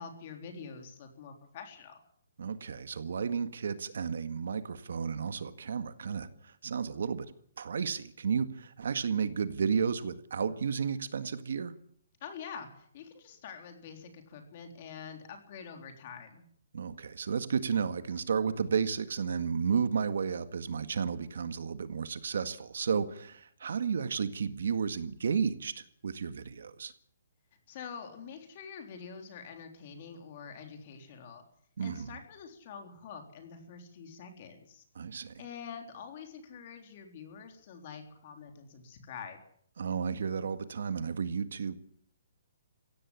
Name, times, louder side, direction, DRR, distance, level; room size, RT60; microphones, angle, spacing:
voice 1, 0.0-2.0 12.2-16.4 27.7-31.4 31.8-34.8 35.4-39.4, left 6 dB, 35° left, 5 dB, 3.7 m, -46 dB
voice 2, 2.4-7.3 7.6-11.7 16.7-26.9 31.8-32.1 35.0-35.4 39.8-41.7, right 6 dB, 65° right, 11 dB, 1.8 m, -32 dB
17.0 x 15.5 x 10.0 m, 0.63 s
hypercardioid pair, 170°, 0 cm